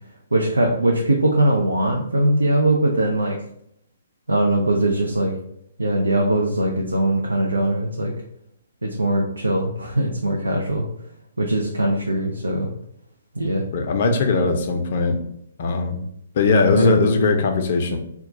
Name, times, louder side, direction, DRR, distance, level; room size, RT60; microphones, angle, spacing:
voice 1, 0.3-3.4 4.3-5.3 5.8-8.1 8.8-10.9 11.4-12.7 13.3-13.6 16.8-17.0, right 1 dB, 85° right, 1 dB, 0.4 m, -21 dB
voice 2, 13.7-15.2 15.6-16.0 16.4-18.0, left 3 dB, 50° left, 4 dB, 0.5 m, -19 dB
2.3 x 2.2 x 3.8 m, 0.73 s
figure-of-eight pair, 130°, 0 cm